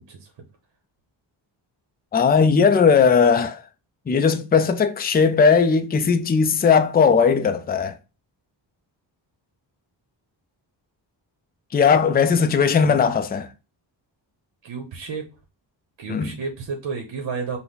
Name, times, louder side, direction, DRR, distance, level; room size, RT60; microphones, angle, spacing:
voice 1, 2.1-3.6 4.1-8.0 11.7-13.5 16.1-16.3, left 6 dB, 20° left, 0.4 m, -18 dB
voice 2, 14.6-15.3 16.0-17.6, right 5 dB, 65° right, 1.0 m, -31 dB
5.6 x 2.1 x 3.9 m
wide cardioid pair, 115°, 46 cm